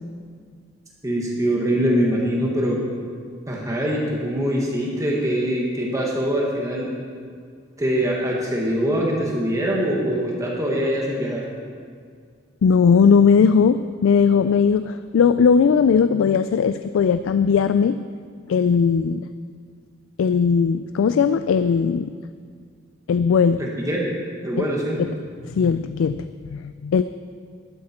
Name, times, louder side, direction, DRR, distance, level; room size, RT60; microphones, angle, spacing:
voice 1, 1.0-2.8 3.5-6.9 7.8-11.4 23.6-24.1 24.4-25.0, equal, 15° right, -3 dB, 1.5 m, -23 dB
voice 2, 12.6-18.0 18.5-19.3 20.2-22.1 23.1-23.6 24.6-24.7 25.0-25.1 25.4-27.0, left 6 dB, 85° left, 12 dB, 0.3 m, -18 dB
12.0 x 11.5 x 4.4 m, 2.1 s
head